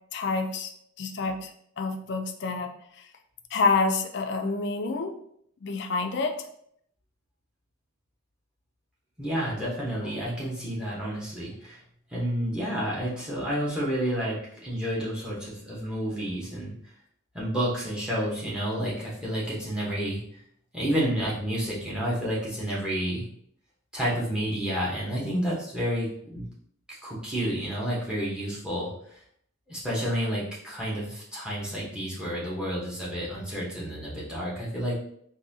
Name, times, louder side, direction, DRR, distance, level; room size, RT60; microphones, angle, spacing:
voice 1, 0.1-0.7 1.0-1.5 1.8-2.7 3.5-5.2 5.6-6.4, left 3 dB, 55° left, 5 dB, 0.4 m, -27 dB
voice 2, 9.2-11.8 12.1-16.7 17.3-20.2 20.7-23.2 23.9-26.4 26.9-29.2 29.7-35.0, equal, 5° right, -6 dB, 0.9 m, -30 dB
4.0 x 2.7 x 2.6 m, 0.69 s
head